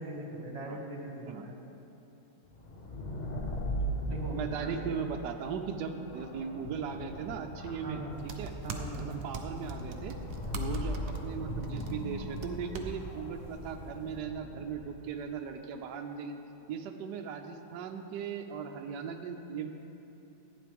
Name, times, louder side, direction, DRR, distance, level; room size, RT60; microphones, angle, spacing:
voice 1, 0.0-1.6 3.8-4.8 7.8-8.2 8.6-9.2, right 2 dB, 40° right, -1 dB, 1.8 m, -40 dB
sound 1, 2.5-15.1, equal, 90° left, 0.3 m, -39 dB
voice 2, 4.3-8.5 9.0-10.2 10.5-16.3 16.7-19.7, right 6 dB, 75° right, 4 dB, 1.2 m, -38 dB
sound 2, 8.1-14.2, right 3 dB, 55° right, 0.7 m, -43 dB
14.5 x 9.2 x 3.4 m, 3.0 s
omnidirectional pair, 1.9 m